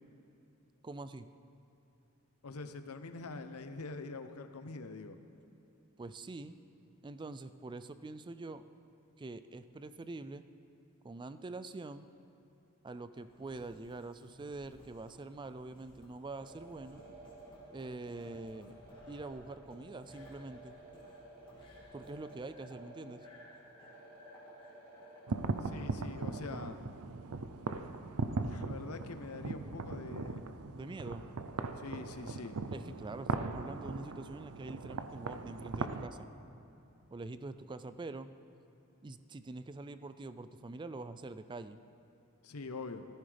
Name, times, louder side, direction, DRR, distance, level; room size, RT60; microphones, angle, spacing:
voice 1, 0.8-1.3 6.0-6.6 7.0-8.6 9.2-10.4 11.0-12.1 12.8-17.0 17.7-18.7 19.1-20.8 21.9-23.3 30.7-31.3 32.7-36.3 37.1-38.3 39.0-41.8, right 2 dB, 20° right, 12 dB, 0.3 m, -45 dB
voice 2, 2.4-5.2 25.6-26.8 28.4-30.4 31.8-32.6 42.4-43.0, left 3 dB, 90° left, 9 dB, 0.8 m, -44 dB
sound 1, 13.1-25.2, left 1 dB, 25° left, 2.5 m, -60 dB
sound 2, 16.4-25.7, right 1 dB, 40° right, 2.3 m, -54 dB
sound 3, 25.3-36.1, right 3 dB, 90° right, 0.6 m, -39 dB
17.5 x 14.5 x 3.4 m, 2.8 s
head